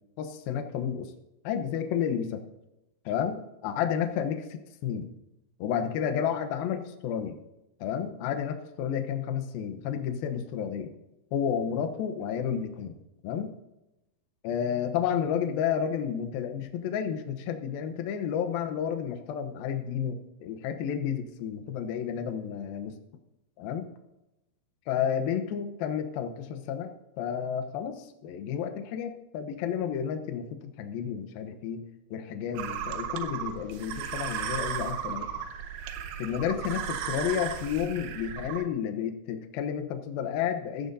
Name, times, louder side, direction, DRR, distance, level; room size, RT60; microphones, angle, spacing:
voice 1, 0.2-1.1 1.4-2.4 3.1-5.1 5.6-7.4 7.8-10.9 11.3-13.0 13.2-13.5 14.4-23.0 23.6-23.9 24.9-31.8 32.1-35.3 36.2-40.9, left 8 dB, 70° left, 7 dB, 2.6 m, -31 dB
sound 1, 32.6-38.6, right 8 dB, 85° right, 3.1 m, -35 dB
15.5 x 15.0 x 2.7 m, 0.94 s
omnidirectional pair, 4.8 m